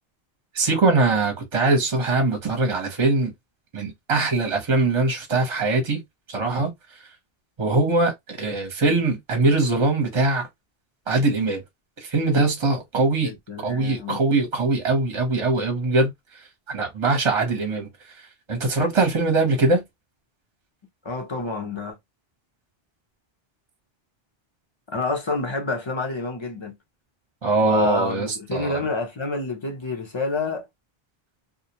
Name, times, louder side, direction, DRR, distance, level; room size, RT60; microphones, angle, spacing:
voice 1, 0.5-3.3 3.7-6.0 6.3-6.7 7.6-10.5 11.1-11.6 12.0-13.3 13.6-16.1 16.7-17.9 18.5-19.8 27.4-28.8, right 3 dB, 35° right, 0.7 m, -22 dB
voice 2, 13.2-14.2 21.0-22.0 24.9-26.7 27.6-30.7, left 3 dB, 35° left, 0.5 m, -28 dB
2.3 x 2.1 x 2.7 m
omnidirectional pair, 1.0 m